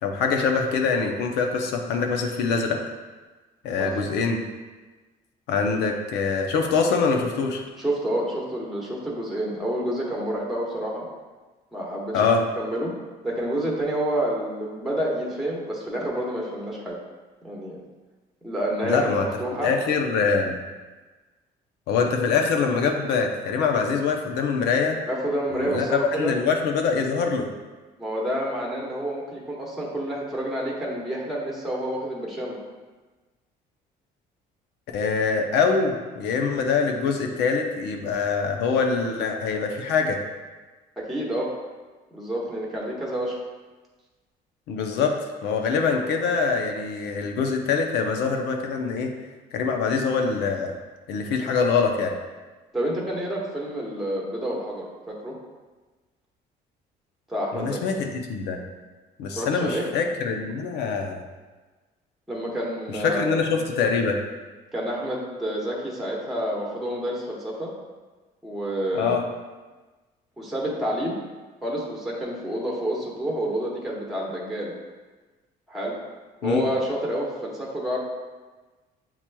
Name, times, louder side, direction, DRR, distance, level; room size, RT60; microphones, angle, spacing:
voice 1, 0.0-2.8 3.6-4.4 5.5-7.6 12.1-12.4 18.8-19.3 19.6-20.6 21.9-25.0 25.5-27.5 34.9-40.2 44.7-49.1 49.5-50.7 51.1-52.1 57.5-58.6 59.2-61.2 62.9-64.2 68.9-69.3 76.4-76.7, left 5 dB, 90° left, 3 dB, 0.6 m, -24 dB
voice 2, 7.8-11.0 11.7-12.9 13.2-17.0 17.4-17.8 18.4-19.7 25.1-26.3 28.0-32.6 41.0-41.5 42.1-43.3 52.7-55.4 57.3-57.8 59.3-59.9 62.3-63.4 64.7-67.7 68.4-69.2 70.4-71.2 71.6-74.7 75.7-76.0 76.4-78.0, right 1 dB, ahead, -3 dB, 1.0 m, -28 dB
7.2 x 3.0 x 2.2 m, 1.3 s
cardioid pair, 110°, 17 cm